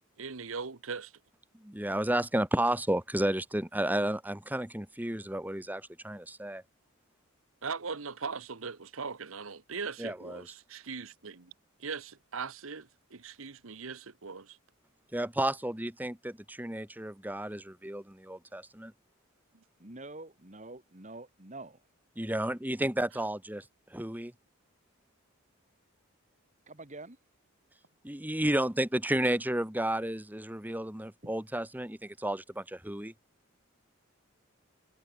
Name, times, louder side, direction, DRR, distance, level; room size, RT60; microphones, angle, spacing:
voice 1, 0.2-1.1 7.6-11.5 11.8-14.6, right 5 dB, 80° right, 1.2 m, -40 dB
voice 2, 1.6-6.6 10.0-10.5 15.1-18.9 22.2-23.6 23.9-24.3 28.0-33.1, right 1 dB, 10° right, 1.5 m, -32 dB
voice 3, 19.8-21.8 26.7-27.2 31.2-31.3, right 2 dB, 35° right, 2.8 m, -46 dB
head